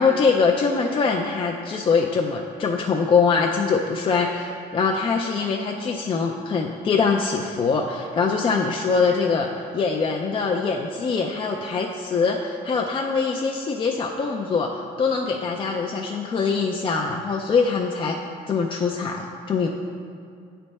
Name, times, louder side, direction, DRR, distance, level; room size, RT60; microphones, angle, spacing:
voice 1, 0.0-18.1 18.5-19.7, left 5 dB, 30° left, 1 dB, 0.4 m, -23 dB
8.3 x 3.3 x 4.1 m, 2.3 s
cardioid pair, 110°, 17 cm